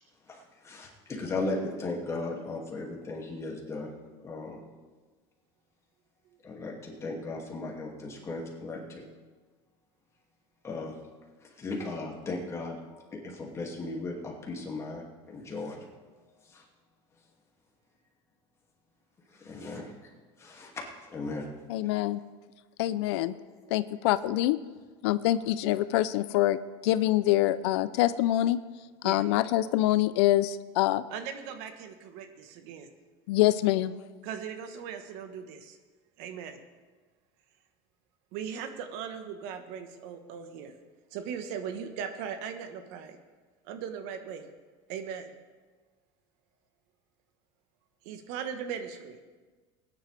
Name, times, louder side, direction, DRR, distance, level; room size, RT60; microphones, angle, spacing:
voice 1, 0.3-3.9 4.2-4.6 6.4-9.0 10.6-10.9 11.4-15.8 16.4-16.6 19.3-19.9 20.4-21.5 21.8-21.9 23.6-23.7 24.1-24.2, left 2 dB, 20° left, -2 dB, 2.4 m, -37 dB
voice 2, 21.7-22.2 22.8-23.3 23.7-24.6 25.0-28.6 29.0-31.0 33.3-33.9, left 15 dB, 85° left, 15 dB, 0.5 m, -25 dB
voice 3, 31.1-32.9 34.2-35.8 36.2-36.6 38.3-40.7 41.1-43.2 43.6-44.5 44.9-45.3 48.0-49.2, right 7 dB, 70° right, 8 dB, 1.3 m, -39 dB
19.5 x 10.0 x 3.4 m, 1.4 s
supercardioid pair, 140°, 14 cm